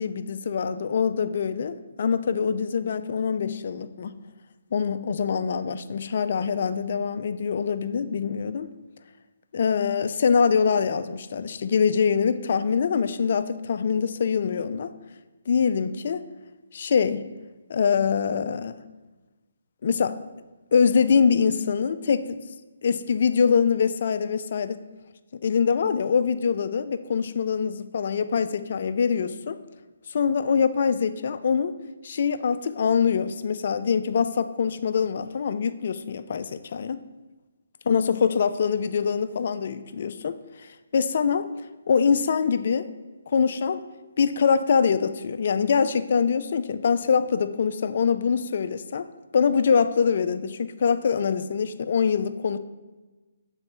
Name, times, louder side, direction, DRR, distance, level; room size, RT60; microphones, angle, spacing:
voice 1, 0.0-4.2 4.7-8.7 9.5-14.9 15.5-16.2 16.7-17.3 17.7-18.8 19.8-20.2 20.7-22.4 22.8-24.8 25.4-29.6 30.1-31.7 32.0-37.0 37.9-40.4 40.9-41.5 41.9-42.9 43.3-43.8 44.2-49.1 49.3-52.6, left 6 dB, 50° left, 12 dB, 0.4 m, -24 dB
6.4 x 4.0 x 4.5 m, 1.2 s
hypercardioid pair, 155°, 0 cm